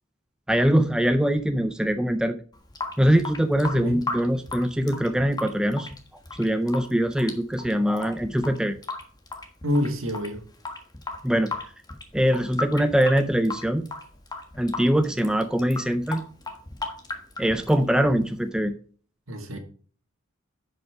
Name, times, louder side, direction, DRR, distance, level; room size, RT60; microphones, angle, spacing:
voice 1, 0.5-2.4 3.0-5.9 6.4-8.8 11.2-11.5 12.1-13.9 14.6-16.2 17.4-18.8, equal, 5° right, 8 dB, 0.4 m, -22 dB
Water tap faucet / Sink (filling or washing) / Drip, 2.5-18.5, left 3 dB, 20° left, 1.4 m, -37 dB
voice 2, 9.6-10.4 19.3-19.6, left 1 dB, 65° right, 4 dB, 1.9 m, -27 dB
10.5 x 5.5 x 4.6 m, 0.43 s
head